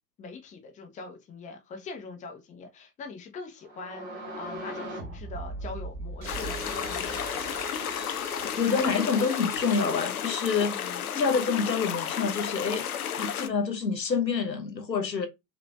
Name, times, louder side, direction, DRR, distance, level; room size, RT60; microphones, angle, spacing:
voice 1, 0.2-7.7 10.7-11.1, left 4 dB, 15° left, 1.1 m, -42 dB
sound 1, 3.6-8.5, right 2 dB, 10° right, 0.3 m, -39 dB
sound 2, 6.2-10.0, right 5 dB, 55° right, 2.3 m, -43 dB
sound 3, 6.3-13.5, left 9 dB, 60° left, 0.9 m, -32 dB
voice 2, 8.5-10.8 11.1-12.9 13.2-15.3, left 5 dB, 85° left, 1.0 m, -27 dB
5.6 x 3.2 x 2.3 m
figure-of-eight pair, 105°, 49 cm